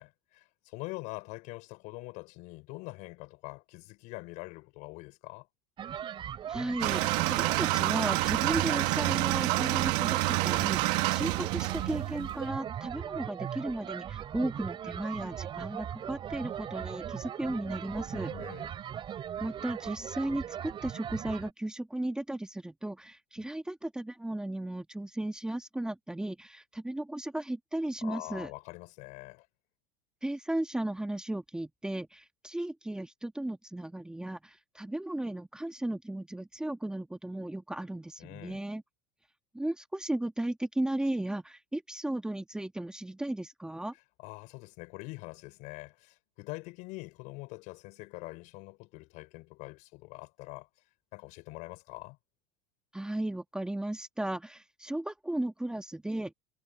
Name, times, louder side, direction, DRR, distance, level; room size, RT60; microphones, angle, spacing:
voice 1, 0.0-5.5 18.3-18.7 28.0-29.5 38.2-38.6 44.2-50.7 51.1-52.2, left 24 dB, 65° left, 5.2 m, -44 dB
sound 1, 5.8-21.5, right 9 dB, 35° right, 3.7 m, -39 dB
voice 2, 6.5-18.3 19.4-28.5 30.2-38.8 39.5-43.9 52.9-56.3, right 1 dB, 5° right, 1.6 m, -35 dB
sound 2, 6.8-12.5, right 21 dB, 65° right, 1.7 m, -28 dB
supercardioid pair, 120°, 14 cm